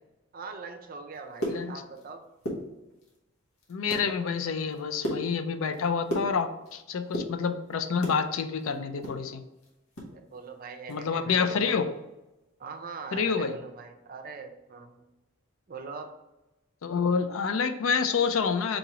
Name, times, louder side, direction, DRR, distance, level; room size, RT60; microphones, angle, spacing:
voice 1, 0.3-2.3 10.1-11.7 12.6-15.1 15.7-16.1, right 4 dB, 40° right, 5 dB, 0.5 m, -42 dB
sound 1, 1.1-2.1 2.3-3.2 3.6-4.1 4.5-6.7 7.0-8.2 8.6-10.1 10.4-10.5 10.9-11.1 11.5-11.7, equal, 90° left, 1.2 m, -35 dB
voice 2, 1.5-1.8 3.7-9.4 10.9-11.9 13.1-13.6 16.8-18.8, left 5 dB, 70° left, 9 dB, 0.4 m, -28 dB
3.8 x 2.9 x 4.8 m, 1.0 s
head